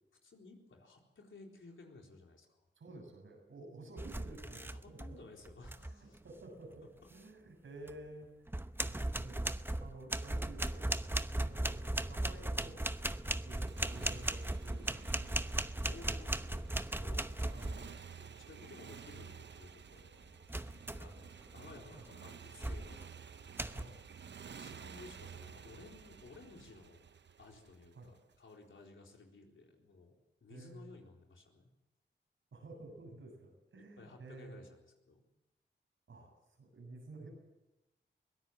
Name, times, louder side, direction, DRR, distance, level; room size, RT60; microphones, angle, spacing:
voice 1, 0.2-2.7 4.4-6.2 15.7-17.4 17.8-20.1 20.9-21.1 21.5-23.0 24.3-27.1 27.4-31.7 33.7-34.8 35.1-35.2, left 3 dB, 80° left, 1 dB, 4.1 m, -56 dB
voice 2, 2.8-4.6 4.9-5.2 5.8-8.3 8.8-10.8 11.4-15.7 17.4-18.0 18.7-18.9 20.8-21.2 22.0-22.1 23.7-24.0 27.9-28.1 30.5-31.0 32.5-34.7 36.1-36.3 36.6-37.3, right 2 dB, 90° right, 1 dB, 7.4 m, -52 dB
sound 1, 4.0-5.2 5.4-5.9 7.9-8.0 8.5-18.0 20.5-21.2 21.7-22.0 22.6-23.1 23.6-23.8, right 1 dB, 10° right, 0.8 m, -37 dB
Motorcycle, 13.2-28.4, right 7 dB, 65° right, 0.7 m, -53 dB
22.5 x 17.5 x 7.6 m, 0.99 s
cardioid pair, 60°, 20 cm